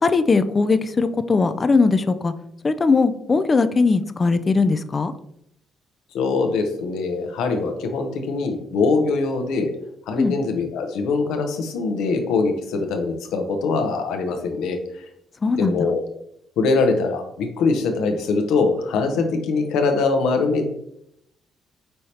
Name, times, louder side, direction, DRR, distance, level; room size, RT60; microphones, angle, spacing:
voice 1, 0.0-2.3 2.6-5.1 10.2-10.4 15.4-15.9, left 4 dB, 35° left, 11 dB, 0.4 m, -19 dB
voice 2, 6.1-9.7 10.1-15.0 15.6-16.0 16.6-20.7, left 4 dB, 90° left, 5 dB, 0.7 m, -22 dB
5.5 x 3.2 x 2.8 m, 0.75 s
cardioid pair, 90°, 0 cm